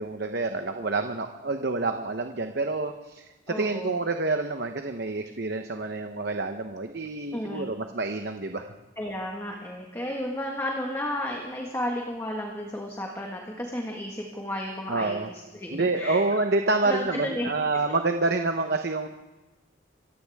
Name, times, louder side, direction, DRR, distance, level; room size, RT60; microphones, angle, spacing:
voice 1, 0.0-8.7 14.9-15.3 15.7-19.1, right 3 dB, 50° right, 6 dB, 0.9 m, -28 dB
voice 2, 3.5-3.9 7.3-7.7 9.0-15.2 15.5-16.2 16.8-17.5, left 1 dB, 15° left, 0 dB, 1.6 m, -33 dB
26.5 x 15.0 x 3.6 m, 1.1 s
head